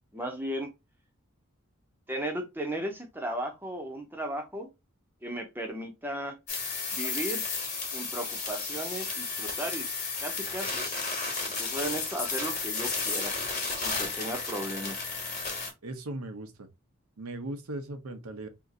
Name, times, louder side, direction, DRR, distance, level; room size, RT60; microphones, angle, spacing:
voice 1, 0.1-0.7 2.1-4.7 5.2-6.4 6.9-7.5 7.9-9.9 10.2-10.9 11.4-13.3 13.8-15.0, right 1 dB, 10° right, 0.6 m, -35 dB
sound 1, 6.5-15.7, left 4 dB, 35° left, 1.2 m, -33 dB
voice 2, 15.8-16.5 17.2-18.5, right 2 dB, 90° right, 0.8 m, -38 dB
2.8 x 2.5 x 3.6 m
head